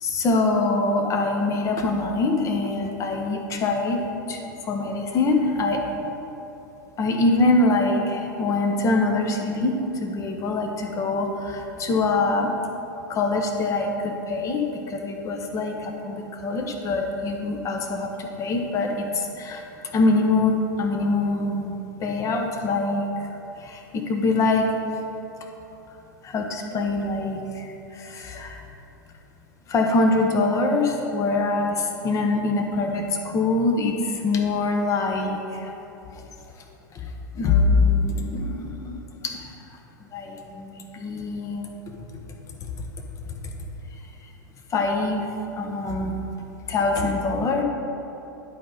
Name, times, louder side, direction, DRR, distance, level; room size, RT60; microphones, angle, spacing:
voice 1, 0.0-5.8 7.0-12.5 13.1-19.6 19.9-23.3 23.6-24.7 26.2-28.6 29.7-35.7 36.9-39.5 40.1-41.9 42.6-42.7 43.4-43.5 44.7-45.3 45.6-46.2 46.7-47.6, left 3 dB, 30° left, 3 dB, 1.0 m, -24 dB
11.0 x 5.2 x 4.0 m, 3.0 s
figure-of-eight pair, 95°, 11 cm